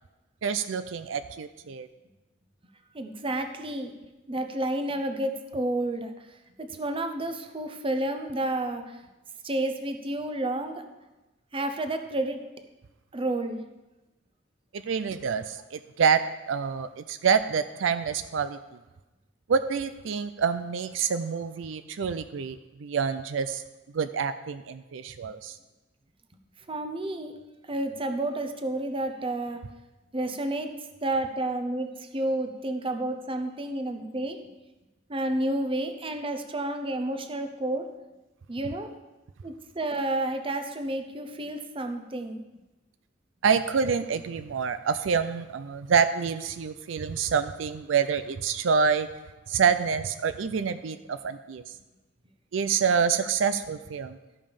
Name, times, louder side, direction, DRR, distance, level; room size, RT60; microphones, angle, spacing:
voice 1, 0.4-1.9 14.9-16.2 16.5-18.6 19.5-23.6 23.9-25.6 43.4-49.1 49.5-51.7 52.5-54.2, right 6 dB, 80° right, 11 dB, 0.4 m, -27 dB
voice 2, 2.9-3.9 4.3-6.1 6.6-9.0 9.4-10.8 11.5-12.4 13.1-13.6 26.7-27.3 27.7-29.6 30.1-30.7 31.0-34.4 35.1-37.9 38.5-38.9 39.4-42.4, right 1 dB, 30° right, 7 dB, 0.8 m, -30 dB
13.0 x 5.3 x 5.2 m, 1.1 s
head